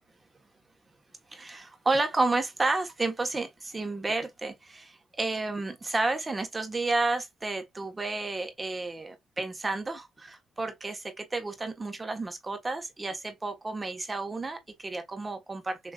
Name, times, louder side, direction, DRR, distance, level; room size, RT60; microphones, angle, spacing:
voice 1, 1.3-15.9, right 3 dB, 25° right, 1.3 m, -31 dB
6.6 x 2.9 x 2.4 m
cardioid pair, 90°, 0 cm